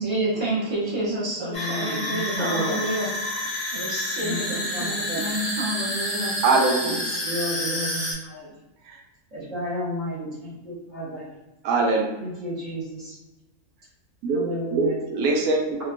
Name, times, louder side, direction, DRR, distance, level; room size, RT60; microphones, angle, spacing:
voice 1, 0.0-3.1 3.7-6.3, right 1 dB, 20° right, -8 dB, 0.9 m, -29 dB
voice 2, 1.4-2.8 4.2-5.2 6.8-8.5 9.3-11.2 12.2-13.1 14.3-14.9, equal, 60° right, -9 dB, 1.2 m, -32 dB
sound 1, 1.5-8.1, left 1 dB, 30° left, 0.6 m, -29 dB
voice 3, 6.4-7.1 8.9-9.0 11.6-12.0 14.2-14.4 14.7-15.7, right 3 dB, 90° right, 1 dB, 1.1 m, -22 dB
2.9 x 2.2 x 2.4 m, 1.1 s
omnidirectional pair, 1.5 m